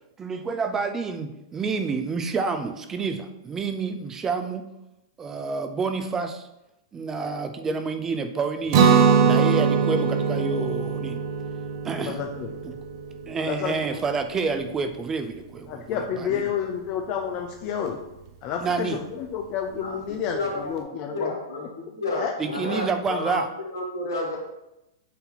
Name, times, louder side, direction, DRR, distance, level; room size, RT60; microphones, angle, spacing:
voice 1, 0.2-4.7 5.2-6.5 6.9-8.9 9.2-11.2 11.8-12.2 12.6-12.8 13.3-16.4 18.6-19.0 22.4-23.5, right 4 dB, 20° right, 8 dB, 0.5 m, -28 dB
Guitar, 8.7-14.5, right 6 dB, 55° right, 0.7 m, -22 dB
voice 2, 12.1-12.6 13.5-14.0 15.7-18.0 18.4-21.3 22.2-22.3, left 8 dB, 40° left, 3 dB, 0.6 m, -30 dB
voice 3, 19.8-20.8 21.1-24.4, left 2 dB, 80° left, -1 dB, 1.8 m, -31 dB
8.3 x 2.8 x 4.0 m, 0.90 s
hypercardioid pair, 110°, 2 cm